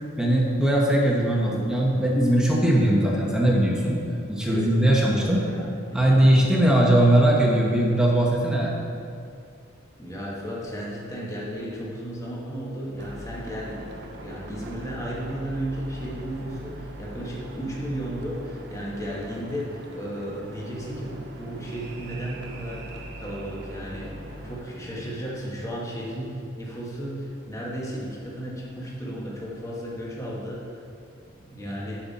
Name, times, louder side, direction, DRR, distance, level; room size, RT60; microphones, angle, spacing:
voice 1, 0.2-4.0 4.3-5.4 5.9-8.7 31.6-31.8, right 1 dB, 5° right, -3 dB, 1.2 m, -20 dB
voice 2, 4.4-6.4 10.0-13.8 14.2-30.8 31.4-32.0, equal, 15° left, -5 dB, 1.5 m, -34 dB
sound 1, 13.0-24.6, right 1 dB, 55° right, 0.9 m, -41 dB
11.0 x 5.7 x 4.2 m, 2.4 s
head